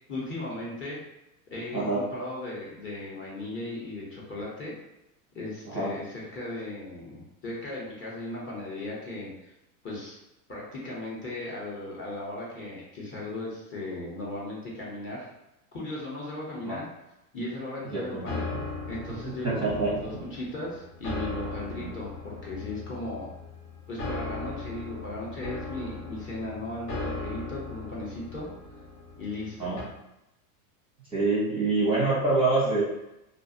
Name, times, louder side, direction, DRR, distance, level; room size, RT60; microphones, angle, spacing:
voice 1, 0.1-1.0 1.5-4.7 5.3-9.5 9.8-10.2 10.5-15.3 15.7-16.8 17.3-18.4 18.9-23.3 23.9-28.5 29.2-29.8, left 2 dB, 25° left, -5 dB, 0.7 m, -37 dB
voice 2, 1.7-2.0 5.6-5.9 16.7-16.8 17.9-18.6 19.2-19.9 21.8-21.9 29.6-29.8 31.1-32.8, right 3 dB, 10° right, -7 dB, 0.6 m, -26 dB
sound 1, 18.0-29.8, left 3 dB, 90° left, 1.0 m, -38 dB
2.4 x 2.2 x 2.6 m, 0.91 s
supercardioid pair, 120°, 46 cm